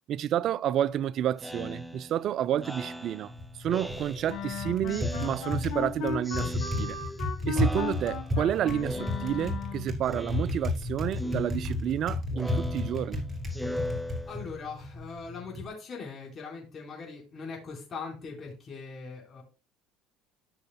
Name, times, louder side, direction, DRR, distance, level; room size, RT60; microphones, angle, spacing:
voice 1, 0.1-3.3 3.6-7.0 7.5-13.2, right 10 dB, 55° right, 0.3 m, -30 dB
Speech synthesizer, 1.4-4.5 4.9-5.9 6.2-7.3 7.5-8.5 8.8-9.7 10.0-10.8 11.1-14.7, equal, ahead, 0.8 m, -40 dB
Typing, 3.3-15.7, left 2 dB, 25° right, 2.5 m, -33 dB
Wind instrument woodwind instrument, 4.3-9.9, left 7 dB, 65° left, 1.5 m, -37 dB
voice 2, 14.3-19.4, left 5 dB, 40° left, 4.1 m, -41 dB
13.5 x 6.3 x 2.2 m
hypercardioid pair, 70°, 0 cm